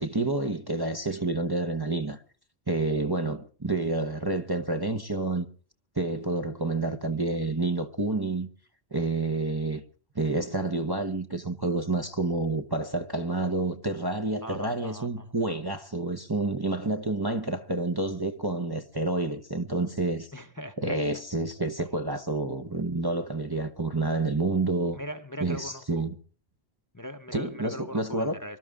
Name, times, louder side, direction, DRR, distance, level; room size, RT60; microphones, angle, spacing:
voice 1, 0.0-2.2 2.7-5.5 6.0-8.5 8.9-9.8 10.1-20.3 20.8-25.0 25.4-26.2 27.3-28.4, right 2 dB, 20° right, 0.9 m, -29 dB
voice 2, 14.4-15.3 20.3-21.0 25.0-26.1 26.9-28.6, equal, 20° left, 0.9 m, -40 dB
24.5 x 12.5 x 3.6 m
omnidirectional pair, 1.1 m